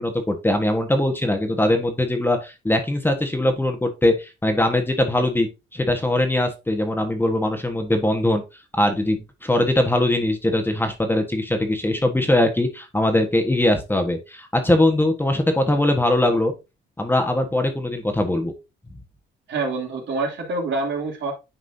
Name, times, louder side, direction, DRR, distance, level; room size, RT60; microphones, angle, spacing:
voice 1, 0.0-8.4 8.8-16.5 17.0-18.5, left 1 dB, 10° left, 5 dB, 1.4 m, -21 dB
voice 2, 19.5-21.3, right 3 dB, 65° right, 0 dB, 3.0 m, -26 dB
9.5 x 4.8 x 2.8 m, 0.26 s
cardioid pair, 90°, 20 cm